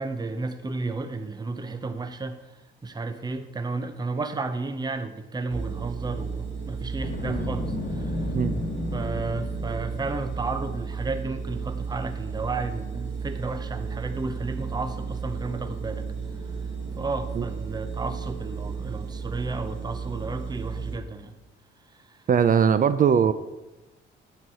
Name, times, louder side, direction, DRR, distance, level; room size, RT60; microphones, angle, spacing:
voice 1, 0.0-8.3 8.9-16.1 17.0-21.3 21.9-22.2, right 3 dB, 20° right, 9 dB, 0.8 m, -33 dB
sound 1, 5.5-21.0, right 5 dB, 75° right, 2.2 m, -33 dB
Boom, 6.9-10.1, left 3 dB, 45° left, 1.4 m, -33 dB
voice 2, 22.3-23.3, right 7 dB, 45° right, 13 dB, 0.5 m, -20 dB
9.5 x 4.7 x 6.9 m, 1.0 s
cardioid pair, 90°, 20 cm